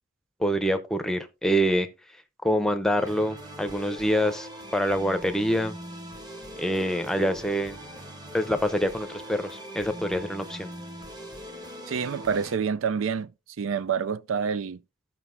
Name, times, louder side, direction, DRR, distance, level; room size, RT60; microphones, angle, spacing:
voice 1, 0.4-1.9 2.4-5.8 6.6-7.8 8.3-10.7, equal, ahead, 0.7 m, -26 dB
sound 1, 3.0-12.6, equal, 20° right, 1.2 m, -41 dB
voice 2, 11.9-13.3 13.6-14.8, right 6 dB, 70° right, 0.4 m, -27 dB
14.5 x 5.8 x 2.6 m
head